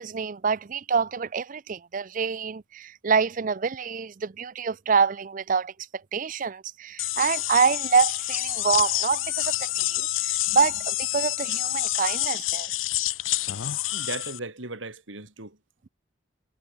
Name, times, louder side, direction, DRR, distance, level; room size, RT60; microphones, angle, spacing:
voice 1, 0.0-12.7, right 5 dB, 40° right, 0.5 m, -26 dB
sound 1, 7.0-14.4, left 16 dB, 85° left, 0.6 m, -28 dB
voice 2, 13.9-15.6, right 3 dB, 75° right, 3.7 m, -37 dB
head